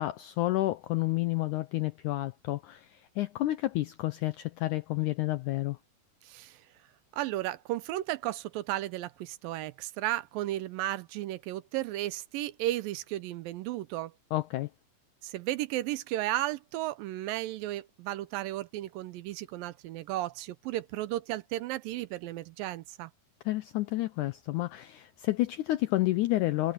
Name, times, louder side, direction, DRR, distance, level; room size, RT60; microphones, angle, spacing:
voice 1, 0.0-5.8 14.3-14.7 23.5-26.7, left 17 dB, 90° left, 1.7 m, -30 dB
voice 2, 6.2-6.6 7.1-14.1 15.2-23.1, right 15 dB, 85° right, 2.3 m, -34 dB
omnidirectional pair, 4.2 m